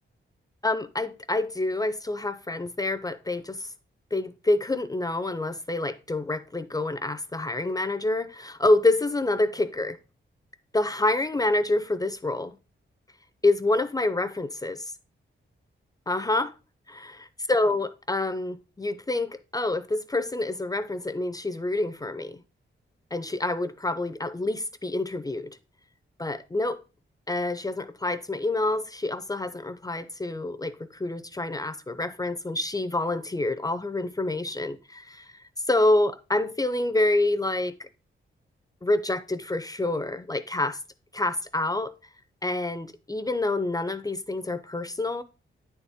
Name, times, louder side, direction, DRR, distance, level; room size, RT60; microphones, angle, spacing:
voice 1, 0.6-3.7 4.1-10.0 10.7-12.5 13.4-14.9 16.1-16.5 16.9-17.2 17.5-22.4 23.1-25.6 26.2-26.8 27.3-35.4 35.7-37.9 38.8-40.8 41.1-42.0 42.4-45.2, left 2 dB, 20° left, 0.4 m, -27 dB
9.3 x 4.2 x 3.5 m
wide cardioid pair, 105°, 21 cm